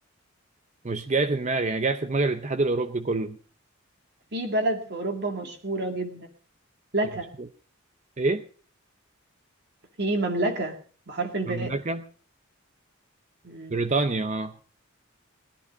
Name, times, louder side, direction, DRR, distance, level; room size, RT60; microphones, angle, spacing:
voice 1, 0.8-3.4 7.4-7.5 8.2-8.4 11.5-12.0 13.7-14.5, right 3 dB, 35° right, 9 dB, 0.7 m, -26 dB
voice 2, 4.3-6.3 6.9-7.3 10.0-10.7 11.1-11.7 13.4-13.7, right 2 dB, 55° right, 3 dB, 2.2 m, -28 dB
19.5 x 11.0 x 5.1 m, 0.42 s
head